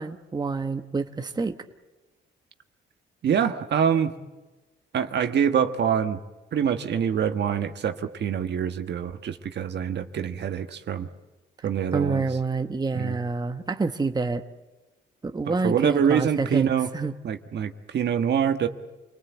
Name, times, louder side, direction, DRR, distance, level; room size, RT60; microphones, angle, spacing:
voice 1, 0.0-1.6 11.9-14.4 15.2-16.7 16.9-17.1, right 4 dB, 20° right, 6 dB, 1.2 m, -27 dB
voice 2, 3.2-4.1 4.9-6.2 6.5-11.1 11.6-12.2 12.9-13.2 15.4-16.9 17.2-18.7, right 8 dB, 60° right, 7 dB, 1.5 m, -25 dB
28.0 x 19.5 x 8.3 m, 1.1 s
cardioid pair, 90°, 20 cm